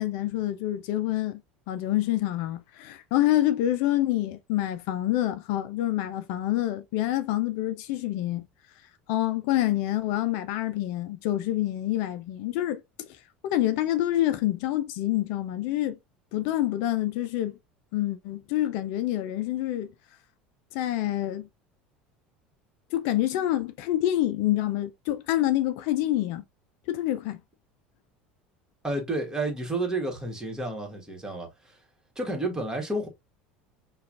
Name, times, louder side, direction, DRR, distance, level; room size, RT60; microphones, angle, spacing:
voice 1, 0.0-1.4 1.7-8.5 9.1-13.1 13.4-16.0 16.3-17.6 17.9-19.9 20.7-21.5 22.9-26.4 26.9-27.4, left 14 dB, 65° left, 0.4 m, -27 dB
voice 2, 28.8-31.8 32.1-33.1, right 2 dB, 10° right, 1.5 m, -31 dB
5.6 x 2.4 x 2.4 m
hypercardioid pair, 75°, 5 cm